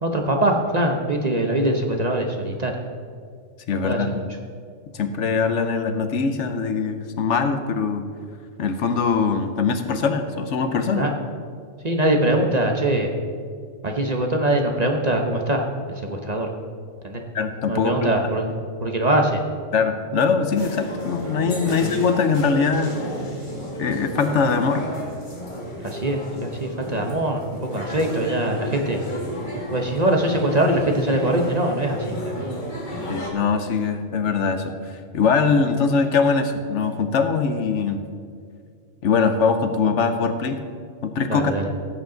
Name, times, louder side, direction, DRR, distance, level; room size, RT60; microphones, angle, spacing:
voice 1, 0.0-2.7 3.8-4.0 10.9-11.1 11.8-13.1 13.8-15.6 16.1-16.5 17.0-17.2 17.7-18.4 18.8-19.4 21.7-21.8 25.8-27.4 27.7-29.0 29.7-32.4 41.3-41.7, right 1 dB, 35° right, 2 dB, 0.9 m, -22 dB
voice 2, 3.7-4.2 4.9-8.0 8.6-11.1 17.3-18.1 18.4-18.5 19.7-23.0 23.8-24.9 33.1-34.8 35.1-38.0 39.0-40.6 41.0-41.6, left 5 dB, 70° left, 8 dB, 1.1 m, -22 dB
sound 1, 20.6-33.3, equal, 35° left, 1.9 m, -32 dB
15.5 x 8.1 x 3.9 m, 2.2 s
omnidirectional pair, 1.3 m